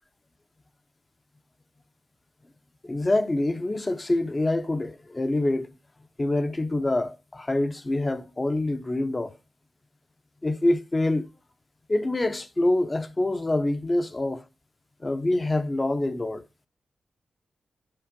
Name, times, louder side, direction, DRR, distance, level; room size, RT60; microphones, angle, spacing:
voice 1, 2.8-5.7 6.2-9.3 10.4-11.3 11.9-14.4 15.0-16.4, left 2 dB, 25° left, 0.7 m, -26 dB
8.8 x 4.3 x 5.1 m
wide cardioid pair, 125°, 0 cm